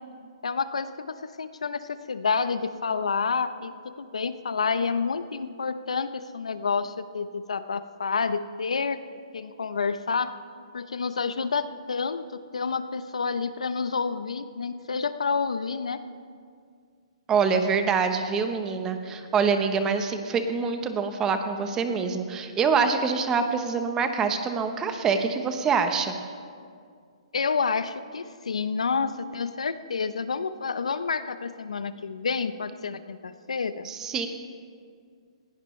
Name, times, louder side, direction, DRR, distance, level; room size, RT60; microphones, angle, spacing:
voice 1, 0.4-9.0 9.3-10.3 10.7-16.0 27.3-33.9, left 5 dB, 90° left, 12 dB, 0.8 m, -29 dB
voice 2, 17.3-26.1 33.8-34.3, right 5 dB, 15° right, 7 dB, 1.0 m, -25 dB
19.5 x 16.5 x 3.3 m, 2.2 s
hypercardioid pair, 150°, 3 cm